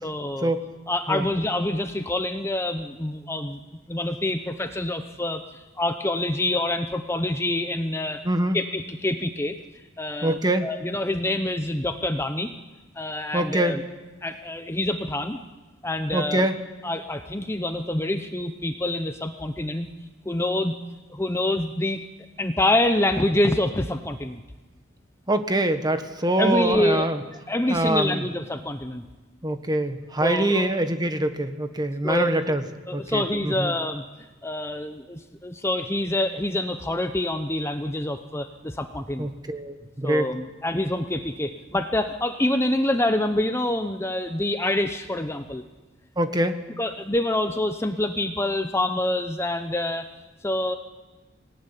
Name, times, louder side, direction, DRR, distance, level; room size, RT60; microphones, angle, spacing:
voice 1, 0.0-0.5 0.9-3.6 3.9-8.2 8.5-9.6 10.0-12.5 13.0-13.8 14.2-15.4 15.8-16.5 16.8-19.9 20.2-20.8 21.1-22.0 22.4-24.4 26.4-27.1 27.5-29.0 30.2-30.8 32.0-32.6 32.9-34.0 34.4-39.3 40.0-45.6 46.8-50.1 50.4-50.8, left 1 dB, 15° left, 7 dB, 0.9 m, -26 dB
voice 2, 8.2-8.6 10.2-10.7 13.3-13.8 16.1-16.6 25.3-27.2 27.7-28.2 29.4-32.6 32.9-33.7 39.2-40.3 46.2-46.6, right 1 dB, 20° right, 8 dB, 1.5 m, -24 dB
25.5 x 18.0 x 10.0 m, 1.2 s
head